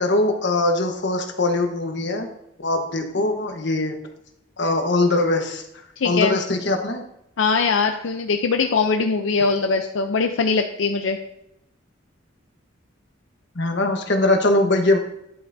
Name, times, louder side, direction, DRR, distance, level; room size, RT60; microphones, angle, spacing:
voice 1, 0.0-2.3 2.6-3.9 4.6-5.6 6.0-7.0 13.5-15.0, left 2 dB, 65° left, 4 dB, 1.2 m, -21 dB
voice 2, 6.0-6.4 7.4-11.2, left 4 dB, 85° left, 5 dB, 0.6 m, -21 dB
11.0 x 7.7 x 2.7 m, 0.80 s
head